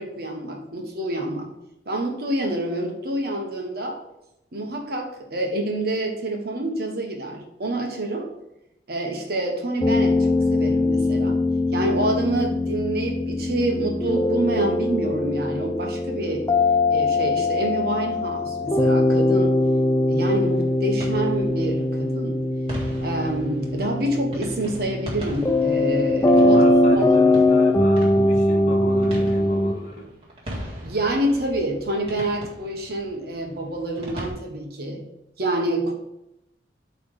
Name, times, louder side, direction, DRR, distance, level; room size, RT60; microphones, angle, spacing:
voice 1, 0.0-1.5 1.8-4.0 4.5-8.3 8.9-11.4 11.7-16.4 16.9-19.5 20.1-22.4 23.0-26.6 26.9-27.2 30.8-35.1 35.4-35.9, right 1 dB, 60° right, 2 dB, 1.4 m, -27 dB
sound 1, 9.8-29.7, left 2 dB, 15° left, 0.4 m, -21 dB
sound 2, 20.4-34.3, equal, 35° right, 1.9 m, -39 dB
voice 2, 26.3-30.1, equal, 45° left, -2 dB, 1.2 m, -32 dB
8.2 x 3.5 x 4.8 m, 0.85 s
head